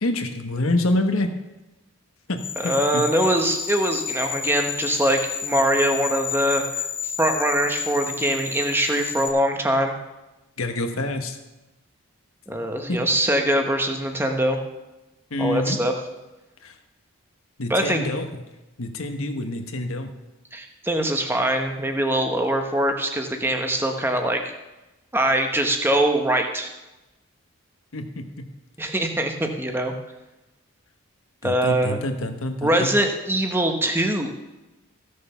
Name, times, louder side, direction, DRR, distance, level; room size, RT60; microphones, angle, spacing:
voice 1, 0.0-1.3 2.3-3.0 10.6-11.4 12.9-13.0 15.3-15.8 16.6-16.7 17.6-18.3 18.8-20.1 27.9-28.4 31.4-33.0, left 1 dB, 70° left, 6 dB, 1.2 m, -26 dB
sound 1, 2.4-9.3, left 7 dB, 25° left, 1.2 m, -30 dB
voice 2, 2.6-9.9 12.5-14.6 15.4-15.9 17.7-18.0 20.5-24.4 25.1-26.7 28.8-29.9 31.4-32.0 32.6-34.3, right 1 dB, 10° right, 4 dB, 1.0 m, -23 dB
15.5 x 6.7 x 5.7 m, 1.0 s
head